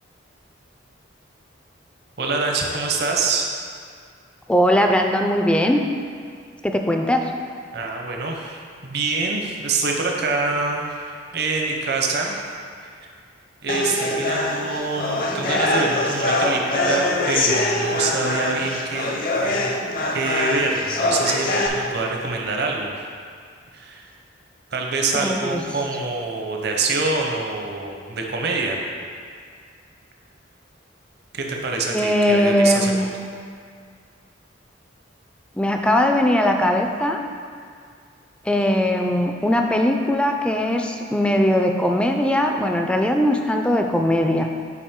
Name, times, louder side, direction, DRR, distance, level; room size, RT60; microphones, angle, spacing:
voice 1, 2.2-3.5 7.7-12.4 13.6-19.1 19.3-19.7 20.1-22.9 23.7-24.0 24.7-28.8 31.3-32.9, right 3 dB, 55° right, 1 dB, 0.8 m, -25 dB
voice 2, 4.5-5.8 6.6-7.3 25.1-25.6 31.9-33.1 35.6-37.2 38.4-44.5, left 1 dB, 5° left, 3 dB, 0.3 m, -20 dB
sound 1, 13.7-21.7, left 2 dB, 50° left, 0.7 m, -23 dB
8.4 x 4.6 x 3.6 m, 2.1 s
head